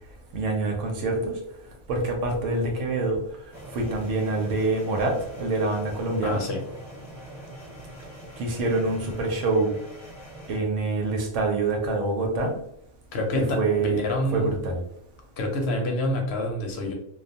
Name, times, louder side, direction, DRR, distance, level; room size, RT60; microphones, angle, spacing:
voice 1, 0.3-1.4 1.9-3.2 3.7-6.4 8.4-9.7 10.5-12.6 13.3-14.8, right 2 dB, 85° right, 1 dB, 1.0 m, -26 dB
sound 1, 3.5-10.6, right 1 dB, ahead, 0.8 m, -43 dB
voice 2, 6.2-6.6 13.1-14.6 15.4-16.9, left 1 dB, 65° left, 2 dB, 0.8 m, -27 dB
2.3 x 2.2 x 2.6 m, 0.76 s
omnidirectional pair, 1.2 m